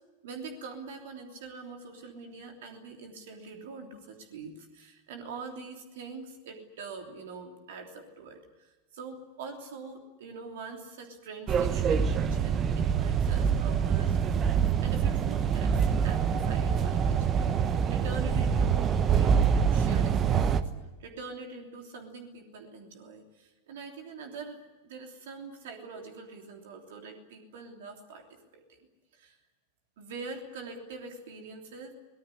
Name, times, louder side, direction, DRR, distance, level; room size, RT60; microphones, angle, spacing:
voice 1, 0.2-14.2 14.8-20.7 21.0-28.8 29.1-29.4 30.0-31.9, right 4 dB, 55° right, 3 dB, 3.2 m, -44 dB
sound 1, 11.5-20.6, right 7 dB, 30° right, 1.2 m, -25 dB
24.0 x 19.0 x 10.0 m, 1.1 s
figure-of-eight pair, 90°, 0 cm